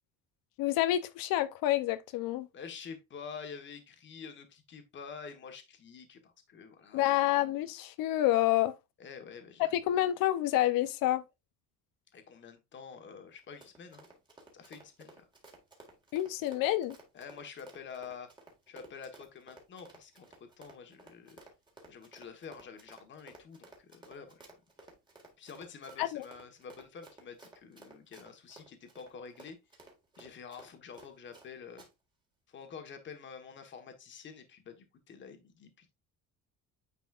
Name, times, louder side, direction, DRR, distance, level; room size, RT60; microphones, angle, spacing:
voice 1, 0.6-2.5 6.9-8.7 9.7-11.2 16.1-17.0 26.0-26.2, left 14 dB, 80° left, 0.7 m, -28 dB
voice 2, 2.5-7.1 9.0-9.8 12.1-14.1 14.5-15.3 17.1-18.3 18.7-21.4 21.9-24.5 25.4-29.6 30.2-31.8 32.5-35.9, left 6 dB, 35° left, 1.3 m, -48 dB
Run, 13.3-31.5 31.8-31.9, right 2 dB, 15° right, 1.8 m, -55 dB
9.5 x 4.1 x 2.4 m
cardioid pair, 155°, 34 cm